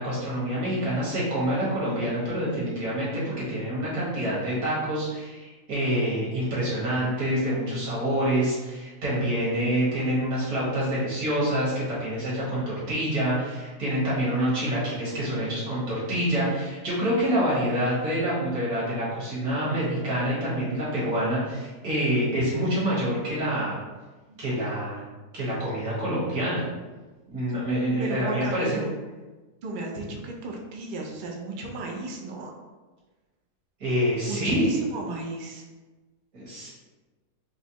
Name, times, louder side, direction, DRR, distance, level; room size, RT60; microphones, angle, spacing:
voice 1, 0.0-23.8 24.4-25.0 25.3-26.6 27.3-28.8 33.8-34.7 36.3-36.7, equal, 70° right, -8 dB, 1.9 m, -27 dB
voice 2, 28.0-28.9 29.6-32.5 34.2-35.6, right 2 dB, 85° right, 0 dB, 0.4 m, -34 dB
4.9 x 2.1 x 2.8 m, 1.2 s
omnidirectional pair, 1.7 m